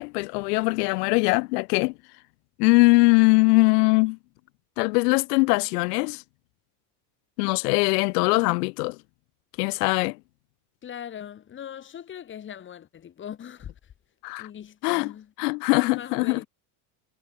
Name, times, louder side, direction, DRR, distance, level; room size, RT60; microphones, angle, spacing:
voice 1, 0.0-1.9 2.6-4.2 4.8-6.2 7.4-8.9 9.6-10.2 14.2-14.5 14.8-15.1 15.4-16.4, left 27 dB, 85° left, 3.2 m, -21 dB
voice 2, 10.8-13.9 14.4-15.3 15.8-16.5, left 9 dB, 25° left, 6.4 m, -40 dB
cardioid pair, 175°, 46 cm